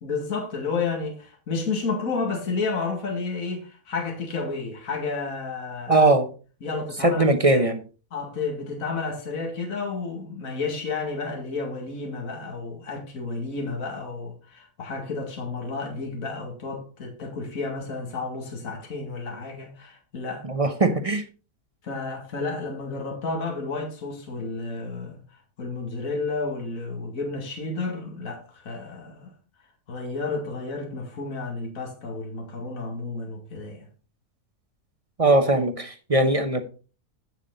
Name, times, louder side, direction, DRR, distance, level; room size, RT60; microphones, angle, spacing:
voice 1, 0.0-6.1 6.6-7.7 8.1-20.5 21.8-29.3 29.9-33.9, left 4 dB, 60° left, 2.4 m, -31 dB
voice 2, 5.9-6.3 7.0-7.8 20.5-21.2 35.2-36.6, right 2 dB, 30° right, 0.7 m, -20 dB
8.7 x 7.4 x 3.9 m
omnidirectional pair, 1.7 m